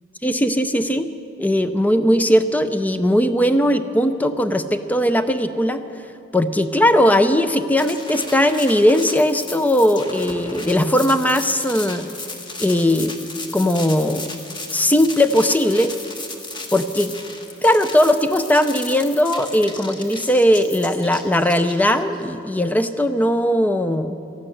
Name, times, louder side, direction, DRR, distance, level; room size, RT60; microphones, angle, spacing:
voice 1, 0.2-1.1 1.4-5.8 6.3-12.1 12.6-13.2 13.5-14.3 14.7-15.9 16.7-17.1 17.6-24.2, equal, 10° left, 10 dB, 0.5 m, -18 dB
sound 1, 7.8-22.2, left 2 dB, 25° left, 1.3 m, -35 dB
14.5 x 12.0 x 7.8 m, 2.7 s
head